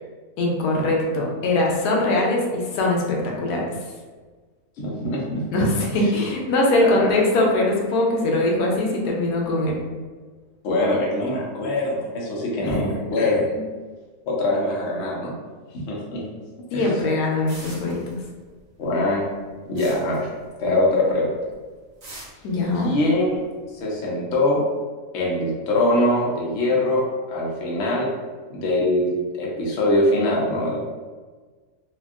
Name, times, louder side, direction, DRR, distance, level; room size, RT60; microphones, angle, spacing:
voice 1, 0.4-3.7 5.5-9.7 12.6-12.8 16.7-18.2 22.4-22.9, left 2 dB, 80° left, -1 dB, 1.1 m, -22 dB
voice 2, 4.8-5.4 6.0-6.1 6.8-7.1 10.6-13.4 14.3-15.3 15.7-16.2 16.7-16.9 18.8-19.2 19.7-20.3 20.6-21.3 22.8-23.4 23.7-24.6 25.1-27.0 27.3-28.1 28.5-30.8, left 1 dB, 55° left, -3 dB, 0.8 m, -23 dB
sound 1, 17.5-18.6 18.9-20.9 21.2-21.5 22.0-23.9, right 1 dB, 90° right, 1.5 m, -43 dB
3.4 x 2.2 x 2.4 m, 1.4 s
omnidirectional pair, 1.6 m